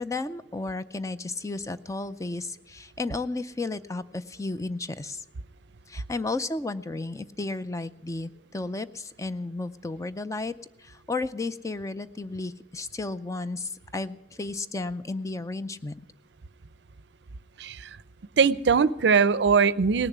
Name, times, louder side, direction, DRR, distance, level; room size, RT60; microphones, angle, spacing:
voice 1, 0.0-5.2 5.9-10.5 10.8-15.9, left 3 dB, 20° left, 12 dB, 0.5 m, -33 dB
voice 2, 18.4-20.1, right 5 dB, 70° right, 18 dB, 0.5 m, -21 dB
18.5 x 6.9 x 9.4 m, 0.79 s
head